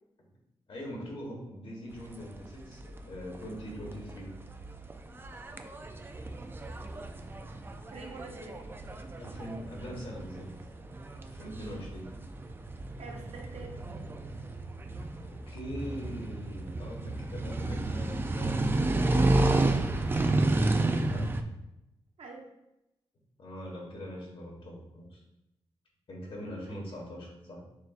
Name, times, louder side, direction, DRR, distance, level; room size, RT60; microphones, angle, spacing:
voice 1, 0.7-4.4 9.2-10.5 11.3-12.1 15.0-18.7 21.1-21.3 23.4-25.2 26.1-27.6, equal, 60° left, -2 dB, 1.4 m, -42 dB
sound 1, 1.9-21.4, right 2 dB, 20° right, 0.3 m, -32 dB
voice 2, 7.9-8.6 13.0-13.7 22.2-22.5 26.5-26.8, right 3 dB, 80° right, 1 dB, 0.8 m, -45 dB
6.3 x 2.6 x 2.4 m, 0.89 s
cardioid pair, 85°, 10 cm